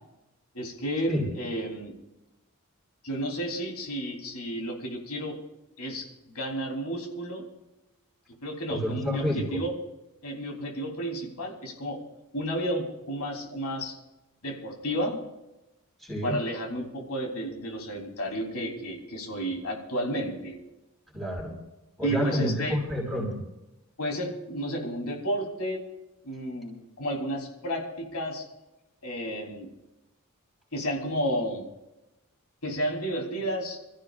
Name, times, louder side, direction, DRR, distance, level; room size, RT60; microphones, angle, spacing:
voice 1, 0.5-1.9 3.0-5.4 5.8-7.4 8.4-9.2 9.5-9.7 10.2-12.0 12.3-13.9 14.4-15.2 16.2-20.6 22.0-22.8 24.0-25.8 26.2-28.5 29.0-29.7 30.7-31.7 32.6-33.8, equal, 85° left, 0 dB, 3.6 m, -32 dB
voice 2, 8.7-9.6 16.0-16.4 21.1-21.6 22.0-23.4, equal, ahead, -3 dB, 4.9 m, -29 dB
27.0 x 14.5 x 2.5 m, 0.97 s
head